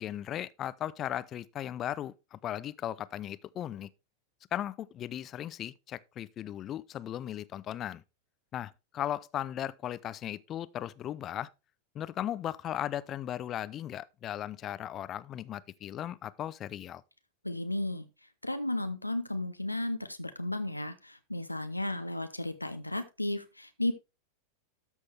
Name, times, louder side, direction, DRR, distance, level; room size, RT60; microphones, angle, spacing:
voice 1, 0.0-3.9 4.5-8.0 8.5-11.5 11.9-17.0, left 11 dB, 30° left, 0.5 m, -37 dB
voice 2, 17.4-18.1 18.4-23.9, left 1 dB, 85° left, 0.7 m, -34 dB
13.0 x 6.4 x 3.3 m
figure-of-eight pair, 90°, 0 cm